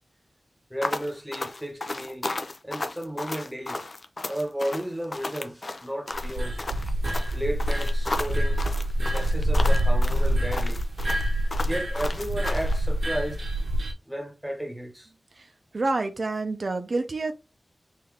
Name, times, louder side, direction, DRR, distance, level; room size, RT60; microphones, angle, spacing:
voice 1, 0.7-2.3 2.6-3.8 4.3-6.6 7.3-8.6 9.1-10.8 11.7-13.4 14.1-15.1, equal, 5° right, 1.1 m, -33 dB
sound 1, 0.8-12.8, left 2 dB, 45° left, 0.5 m, -34 dB
sound 2, 6.1-13.9, equal, 75° right, 1.1 m, -25 dB
voice 2, 15.4-17.3, right 3 dB, 55° right, 0.6 m, -28 dB
4.0 x 2.7 x 3.4 m
wide cardioid pair, 80°, 0 cm